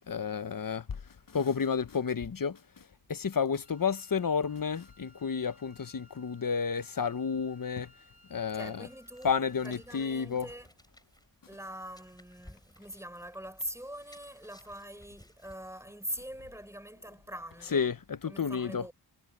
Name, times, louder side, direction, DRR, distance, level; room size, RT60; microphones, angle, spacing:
voice 1, 0.1-7.9 8.3-8.9 9.2-10.5 17.7-18.9, left 6 dB, 55° left, 0.9 m, -31 dB
Wind instrument woodwind instrument, 3.6-10.0, left 1 dB, 55° right, 3.9 m, -62 dB
sound 1, 8.5-15.8, left 1 dB, 10° left, 5.5 m, -59 dB
voice 2, 8.5-10.7 11.5-17.9 18.3-18.9, right 1 dB, 5° right, 6.3 m, -43 dB
wide cardioid pair, 70°, 41 cm